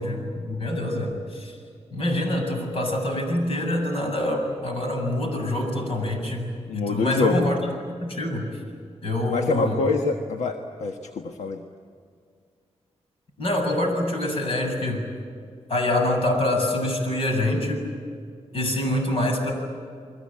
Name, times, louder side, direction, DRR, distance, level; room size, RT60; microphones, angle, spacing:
voice 1, 0.0-1.6 1.9-7.7 8.0-8.5 9.0-9.8 13.4-15.0 15.7-17.8 18.5-19.5, left 1 dB, 55° left, 3 dB, 7.5 m, -25 dB
voice 2, 6.7-7.5 9.3-11.6, left 3 dB, 85° left, 4 dB, 1.4 m, -25 dB
30.0 x 22.5 x 8.8 m, 2.2 s
wide cardioid pair, 110°, 11 cm